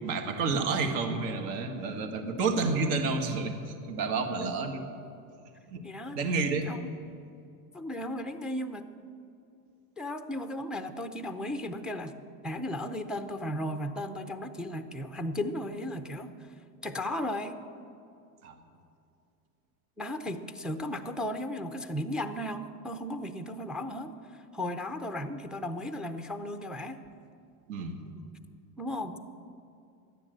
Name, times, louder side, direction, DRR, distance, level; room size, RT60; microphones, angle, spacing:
voice 1, 0.0-4.8 5.7-5.8 6.1-6.7 18.4-18.6 27.7-28.0, right 4 dB, 65° right, 5 dB, 1.8 m, -30 dB
voice 2, 5.8-6.2 6.6-6.9 7.7-8.9 10.0-12.2 12.4-16.5 16.8-17.6 20.0-27.0 28.8-29.3, left 1 dB, ahead, 8 dB, 0.4 m, -35 dB
12.5 x 9.9 x 7.8 m, 2.5 s
supercardioid pair, 125°, 43 cm